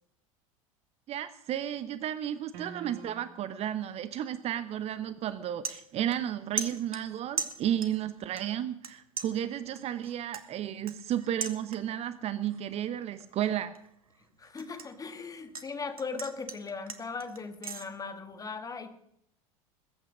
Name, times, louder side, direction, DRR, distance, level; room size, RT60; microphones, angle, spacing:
voice 1, 1.1-13.7, right 11 dB, 35° right, 14 dB, 0.9 m, -33 dB
sound 1, 2.5-3.6, right 7 dB, 55° right, 2.3 m, -45 dB
sound 2, 4.7-4.9 5.3-6.3 6.6-8.1 8.4-8.9 9.2-12.1 12.5-12.8 13.2-15.7 16.0-17.9, right 5 dB, 80° right, 1.4 m, -39 dB
voice 2, 14.4-19.0, left 4 dB, 20° left, 9 dB, 1.9 m, -38 dB
21.0 x 9.0 x 6.3 m, 0.75 s
figure-of-eight pair, 75°, 18 cm